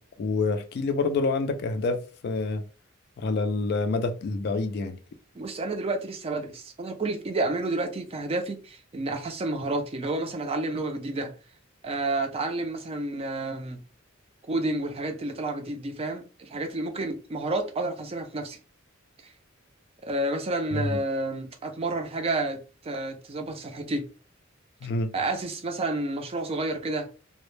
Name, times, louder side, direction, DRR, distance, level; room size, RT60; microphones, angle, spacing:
voice 1, 0.2-2.6 3.2-5.0 20.7-21.0 24.8-25.1, left 3 dB, 55° left, 0.3 m, -27 dB
voice 2, 5.3-11.3 11.8-13.8 14.5-18.6 20.0-24.1 25.1-27.1, right 2 dB, 30° right, 0.4 m, -30 dB
2.0 x 2.0 x 3.0 m
head